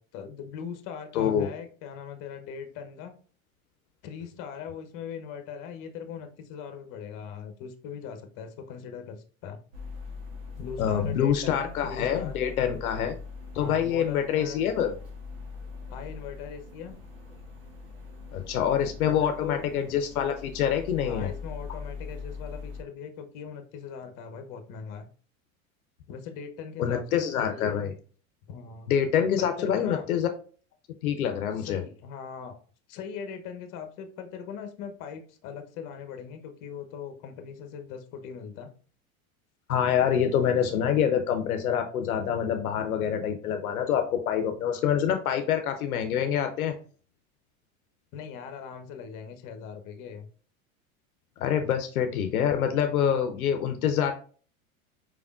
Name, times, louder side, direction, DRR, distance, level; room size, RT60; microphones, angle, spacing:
voice 1, 0.0-3.1 4.0-9.6 10.6-12.4 13.5-14.6 15.9-17.0 19.0-19.7 21.0-25.1 26.1-27.8 28.5-28.9 29.4-30.1 31.6-32.6 32.9-38.7 48.1-50.3, left 7 dB, 50° left, 7 dB, 1.0 m, -40 dB
voice 2, 1.1-1.5 10.8-13.1 13.5-14.9 18.3-21.3 26.8-27.9 28.9-30.3 31.0-31.8 39.7-46.7 51.4-54.1, left 8 dB, 85° left, 6 dB, 0.7 m, -26 dB
sound 1, 9.7-22.8, left 4 dB, 70° right, 1.8 m, -42 dB
5.0 x 3.5 x 2.4 m, 0.41 s
hypercardioid pair, 95°, 42 cm